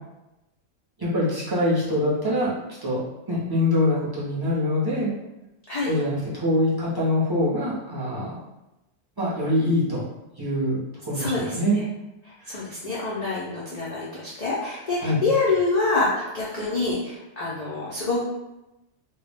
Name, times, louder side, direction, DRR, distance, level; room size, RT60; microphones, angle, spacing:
voice 1, 1.0-2.6 2.8-3.0 3.3-5.1 5.8-8.4 9.2-10.0 10.4-10.8 11.1-11.8 12.4-12.5 15.0-15.2, left 1 dB, 35° right, -8 dB, 0.4 m, -24 dB
voice 2, 11.1-11.8 12.5-18.3, left 3 dB, 80° left, -7 dB, 0.3 m, -26 dB
2.3 x 2.0 x 3.2 m, 0.95 s
omnidirectional pair, 1.4 m